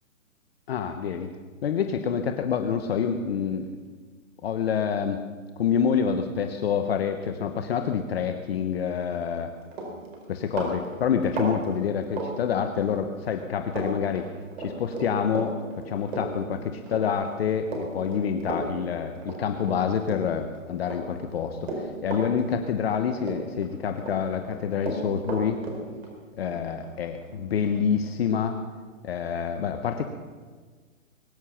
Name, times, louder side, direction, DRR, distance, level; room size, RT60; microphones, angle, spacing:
voice 1, 0.7-1.3 1.6-3.7 4.4-5.2 5.6-9.5 10.3-14.3 14.6-25.6 26.3-28.6 29.0-30.0, left 7 dB, 50° left, 7 dB, 1.1 m, -27 dB
Run, 9.2-9.4 9.7-13.1 13.3-13.9 14.2-20.5 20.8-23.0 23.2-24.2 24.4-27.8, right 2 dB, 50° right, 4.4 m, -34 dB
22.0 x 9.7 x 5.8 m, 1.5 s
hypercardioid pair, 150°, 40 cm